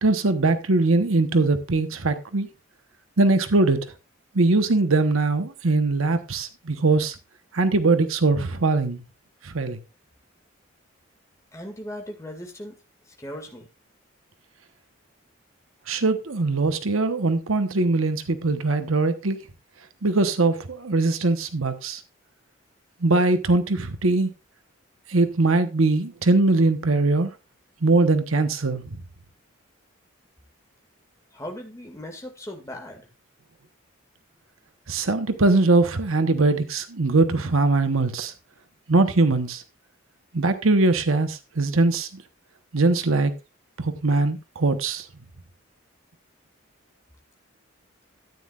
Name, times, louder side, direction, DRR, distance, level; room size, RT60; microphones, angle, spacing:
voice 1, 0.0-2.5 3.2-3.9 4.3-7.1 7.5-9.0 9.4-9.8 15.9-19.4 20.0-22.0 23.0-24.3 25.1-27.3 27.8-28.8 34.9-38.3 38.9-39.6 40.3-42.2 42.7-43.3 43.8-45.1, right 3 dB, 85° right, 1.1 m, -21 dB
voice 2, 11.5-12.8 13.1-13.7 31.3-33.1, equal, 15° left, 2.0 m, -38 dB
13.5 x 9.5 x 2.4 m
head